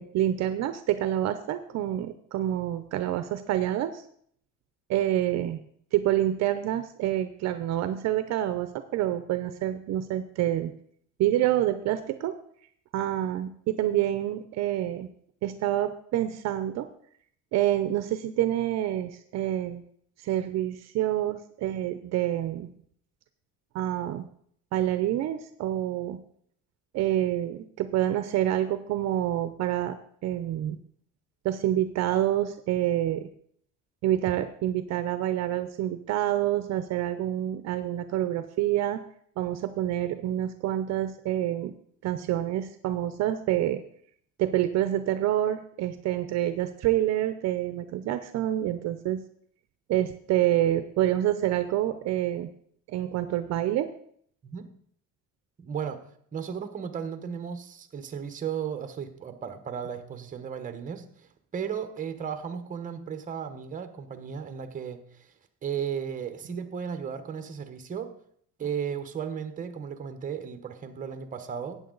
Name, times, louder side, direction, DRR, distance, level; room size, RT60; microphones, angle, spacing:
voice 1, 0.0-4.0 4.9-5.6 5.9-10.7 11.2-12.3 12.9-15.1 15.4-16.9 17.5-19.8 20.2-22.7 23.7-24.3 24.7-26.2 26.9-30.0 30.2-30.8 31.4-33.3 34.0-39.0 39.4-41.7 42.0-43.8 44.4-49.2 49.9-52.5 52.9-53.9, right 12 dB, 60° right, 11 dB, 0.7 m, -27 dB
voice 2, 55.6-56.0 56.3-65.3 65.6-68.1 68.6-71.8, right 7 dB, 25° right, 9 dB, 1.1 m, -35 dB
13.5 x 9.0 x 3.9 m, 0.62 s
cardioid pair, 155°, 31 cm